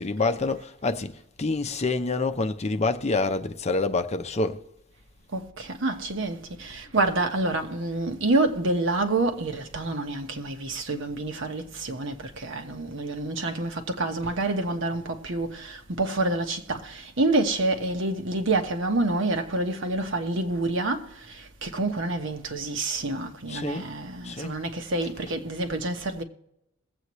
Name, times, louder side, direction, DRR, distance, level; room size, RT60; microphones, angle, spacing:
voice 1, 0.0-4.6 23.5-23.9 24.2-24.6, left 3 dB, 35° left, 0.6 m, -27 dB
voice 2, 5.3-26.2, right 2 dB, 65° right, 1.2 m, -28 dB
22.0 x 8.2 x 3.1 m
head